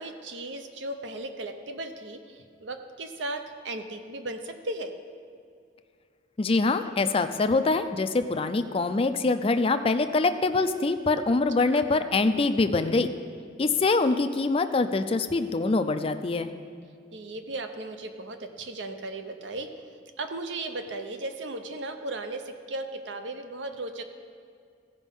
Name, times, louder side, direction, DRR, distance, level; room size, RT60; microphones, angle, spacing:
voice 1, 0.0-4.9 11.6-11.9 17.1-19.7 20.2-24.0, right 2 dB, 70° right, 7 dB, 0.7 m, -36 dB
voice 2, 6.4-13.1 13.6-16.5, left 3 dB, 30° left, 9 dB, 0.4 m, -24 dB
15.0 x 5.3 x 5.4 m, 2.3 s
head